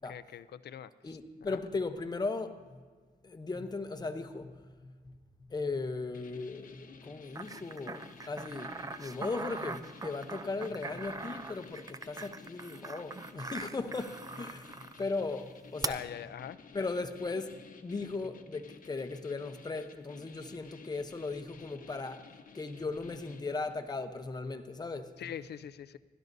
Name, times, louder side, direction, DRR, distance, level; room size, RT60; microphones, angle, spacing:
voice 1, 0.1-1.6 15.9-16.6 25.2-26.0, left 9 dB, 80° left, 0.5 m, -43 dB
voice 2, 1.0-2.8 3.2-4.5 4.8-5.1 5.5-8.7 9.0-16.0 16.7-22.3 22.5-25.1, left 3 dB, 25° left, 0.8 m, -37 dB
sound 1, 6.1-23.9, left 6 dB, 55° left, 0.9 m, -54 dB
sound 2, 7.3-15.0 15.8-15.9, right 3 dB, 20° right, 0.4 m, -41 dB
28.0 x 12.5 x 2.7 m
wide cardioid pair, 175°, 17 cm